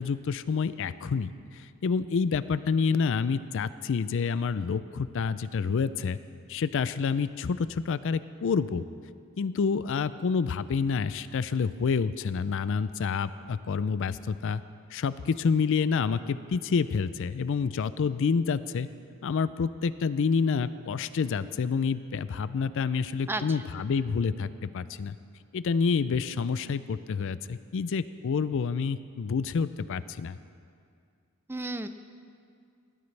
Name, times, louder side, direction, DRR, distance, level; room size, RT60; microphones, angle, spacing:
voice 1, 0.0-6.2 6.5-8.8 9.4-14.6 14.9-18.9 19.2-25.2 25.5-30.4, left 5 dB, 60° left, 15 dB, 0.4 m, -28 dB
voice 2, 23.3-23.6 31.5-31.9, right 2 dB, 10° right, 10 dB, 0.4 m, -33 dB
19.5 x 13.5 x 3.3 m, 2.3 s
head